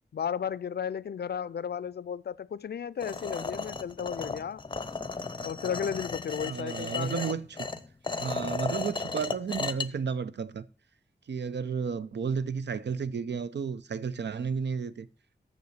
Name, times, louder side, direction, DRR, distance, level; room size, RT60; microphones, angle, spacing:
voice 1, 0.1-4.6 5.4-7.3, left 7 dB, 65° left, 0.4 m, -34 dB
sound 1, 3.0-9.9, left 4 dB, 25° left, 0.7 m, -35 dB
voice 2, 6.4-7.7 8.2-10.6 11.3-15.1, right 6 dB, 80° right, 0.5 m, -32 dB
6.9 x 6.7 x 6.5 m
wide cardioid pair, 60°, 18 cm